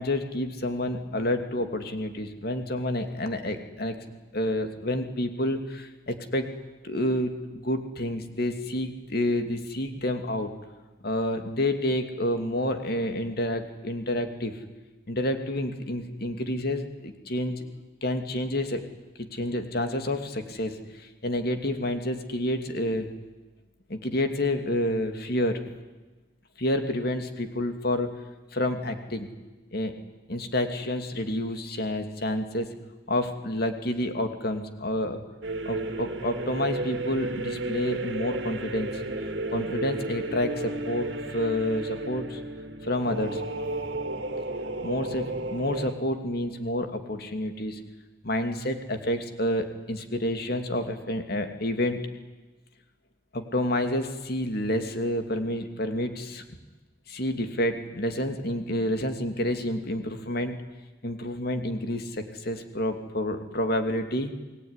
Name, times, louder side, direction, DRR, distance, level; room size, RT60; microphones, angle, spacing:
voice 1, 0.0-4.0 4.3-6.5 6.8-10.5 11.0-14.6 15.1-17.7 18.0-18.8 19.2-23.1 23.9-25.6 26.6-28.1 28.5-29.3 29.7-29.9 30.3-32.7 33.1-35.2 35.6-39.0 39.5-42.4 42.8-43.4 44.8-47.8 48.2-52.0 53.3-56.4 57.1-60.6 61.0-64.3, left 1 dB, 50° left, 6 dB, 2.7 m, -29 dB
sound 1, 35.4-45.9, right 2 dB, 60° right, 2.6 m, -33 dB
29.0 x 20.0 x 9.9 m, 1.2 s
head